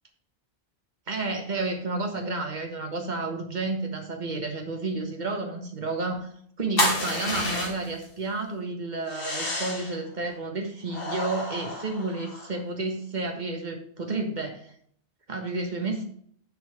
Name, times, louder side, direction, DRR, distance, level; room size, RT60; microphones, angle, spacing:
voice 1, 1.1-6.3 6.6-14.7 15.3-16.0, right 3 dB, 40° right, 3 dB, 1.7 m, -31 dB
sound 1, 6.8-8.0 9.1-10.0 10.9-12.6, left 1 dB, 55° left, 2.2 m, -30 dB
8.0 x 4.6 x 6.9 m, 0.62 s
omnidirectional pair, 1.1 m